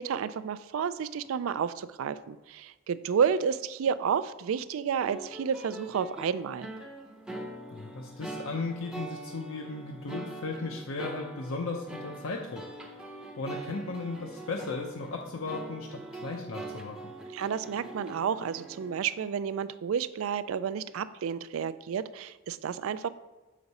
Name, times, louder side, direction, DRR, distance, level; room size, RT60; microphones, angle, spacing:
voice 1, 0.0-6.7 17.3-23.1, right 7 dB, 70° right, 15 dB, 0.3 m, -31 dB
sound 1, 5.0-18.9, right 2 dB, 5° right, 0.6 m, -43 dB
voice 2, 7.7-12.6 13.4-17.1, left 3 dB, 75° left, 1 dB, 0.6 m, -36 dB
6.9 x 5.1 x 4.1 m, 1.2 s
head